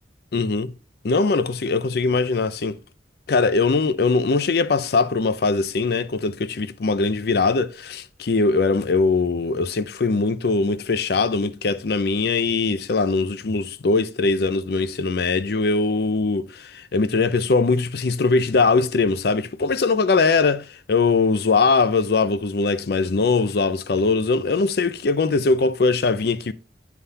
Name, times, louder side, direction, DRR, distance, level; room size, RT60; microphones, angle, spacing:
voice 1, 0.3-0.7 1.0-2.8 3.3-26.5, left 4 dB, 60° left, 0.5 m, -21 dB
9.7 x 3.5 x 5.6 m
head